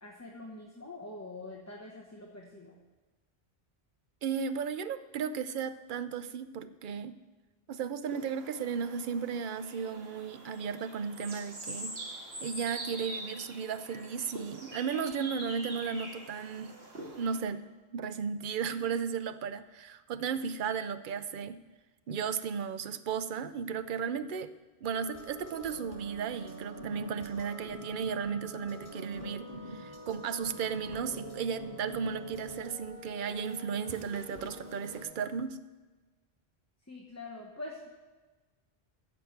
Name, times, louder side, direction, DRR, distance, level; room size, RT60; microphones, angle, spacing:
voice 1, 0.0-2.7 36.9-37.9, left 2 dB, 15° left, -1 dB, 1.0 m, -44 dB
voice 2, 4.2-7.2 7.7-12.0 12.4-16.8 17.1-21.6 22.1-24.5 24.8-35.6, right 6 dB, 55° right, 12 dB, 0.7 m, -35 dB
sound 1, 8.1-17.4, right 1 dB, 75° right, 2.3 m, -44 dB
sound 2, 24.8-35.0, right 1 dB, 60° left, 4.0 m, -45 dB
15.0 x 5.3 x 7.9 m, 1.3 s
omnidirectional pair, 1.1 m